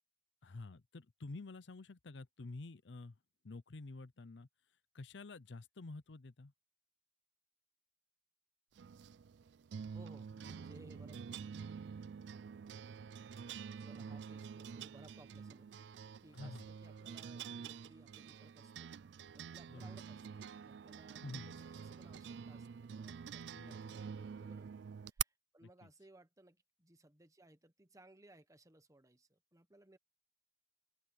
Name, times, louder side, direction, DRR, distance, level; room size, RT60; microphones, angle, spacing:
voice 1, 0.4-3.2 3.4-4.5 4.9-6.5 16.3-16.6 19.7-19.9 21.2-21.5 23.5-23.7 25.6-25.9, left 3 dB, 75° left, 0.7 m, -49 dB
sound 1, 8.8-25.2, right 7 dB, 70° right, 0.4 m, -47 dB
voice 2, 9.9-11.2 13.7-15.7 16.2-18.9 19.3-30.0, right 1 dB, 20° right, 1.3 m, -62 dB
open air
head